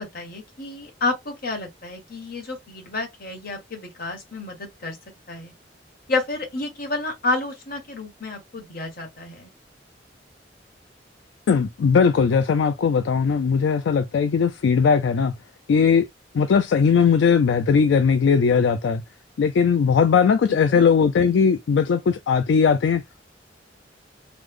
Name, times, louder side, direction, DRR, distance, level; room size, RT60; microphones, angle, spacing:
voice 1, 0.0-5.0 5.3-5.5 6.1-9.5 20.7-20.9, left 2 dB, 55° left, 1.3 m, -30 dB
voice 2, 11.5-15.3 15.7-16.1 16.3-19.0 19.4-23.2, left 6 dB, 75° left, 0.3 m, -19 dB
3.2 x 2.0 x 3.4 m
head